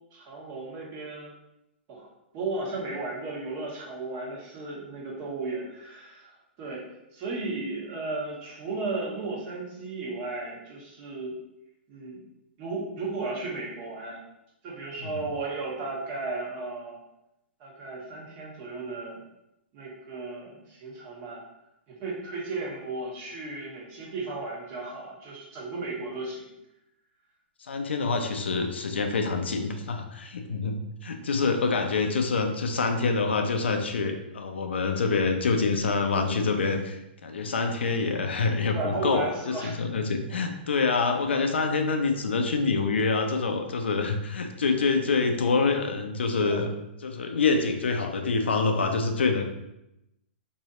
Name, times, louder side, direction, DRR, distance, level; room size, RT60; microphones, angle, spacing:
voice 1, 0.1-1.3 1.9-6.8 7.1-11.3 11.9-12.2 12.6-14.2 14.6-17.0 17.6-19.2 19.7-21.5 21.9-26.5 38.7-39.8 46.4-46.7, right 3 dB, 40° right, -4 dB, 1.3 m, -35 dB
voice 2, 27.6-46.7 47.0-49.4, left 4 dB, 85° left, 5 dB, 0.5 m, -26 dB
3.1 x 2.7 x 3.9 m, 0.88 s
hypercardioid pair, 125°, 6 cm